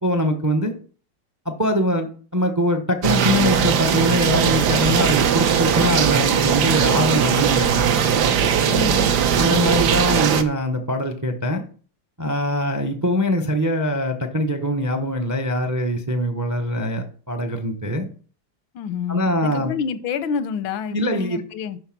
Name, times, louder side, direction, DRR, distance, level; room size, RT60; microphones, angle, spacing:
voice 1, 0.0-0.7 1.4-7.9 9.3-11.6 12.2-18.1 19.1-19.7 20.9-21.4, equal, 25° right, 0.4 m, -23 dB
sound 1, 3.0-10.4, right 7 dB, 65° right, 1.3 m, -19 dB
voice 2, 8.7-9.1 9.5-9.8 18.7-21.8, left 7 dB, 90° left, 1.5 m, -28 dB
11.0 x 4.2 x 5.9 m
omnidirectional pair, 2.1 m